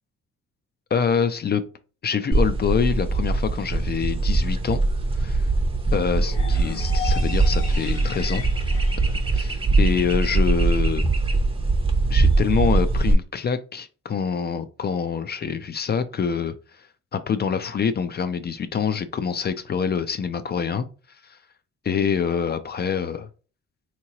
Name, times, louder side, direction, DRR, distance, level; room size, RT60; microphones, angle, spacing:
voice 1, 0.9-1.6 2.0-4.8 5.2-5.5 5.9-8.4 9.0-11.0 12.1-16.8 17.1-20.9 21.2-21.4 21.8-23.3, left 6 dB, 35° left, 11 dB, 0.4 m, -26 dB
sound 1, 2.3-13.1, right 3 dB, 20° right, 0.6 m, -22 dB
sound 2, 6.2-10.2, left 8 dB, 65° left, 1.0 m, -38 dB
3.7 x 2.9 x 2.8 m, 0.37 s
cardioid pair, 90°, 30 cm